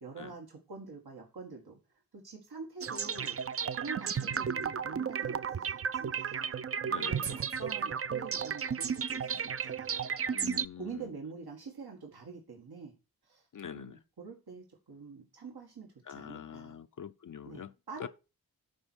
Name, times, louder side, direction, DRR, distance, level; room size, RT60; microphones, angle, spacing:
voice 1, 0.0-1.8 2.2-3.4 3.7-10.1 10.8-12.9 13.2-13.5 13.7-16.8 17.4-18.1, right 4 dB, 85° right, 1.8 m, -46 dB
sound 1, 2.8-10.7, right 7 dB, 40° right, 0.4 m, -33 dB
voice 2, 6.8-7.4 10.3-11.1 13.5-14.0 16.1-17.7 18.0-18.1, left 8 dB, 55° left, 0.5 m, -45 dB
11.0 x 4.3 x 6.2 m
wide cardioid pair, 60°, 37 cm